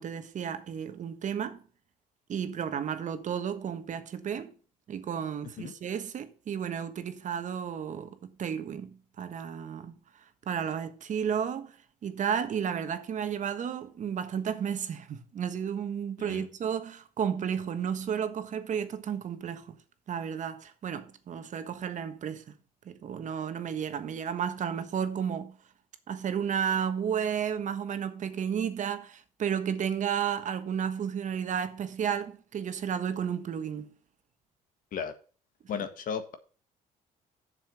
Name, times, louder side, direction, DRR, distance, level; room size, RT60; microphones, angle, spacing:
voice 1, 0.0-1.6 2.3-4.5 4.9-9.9 10.5-11.8 12.0-19.8 20.1-22.6 22.8-25.6 26.1-33.9, right 8 dB, 55° right, 1.3 m, -32 dB
voice 2, 35.7-36.3, left 7 dB, 65° left, 1.6 m, -35 dB
7.5 x 6.9 x 5.6 m
supercardioid pair, 80°, 15 cm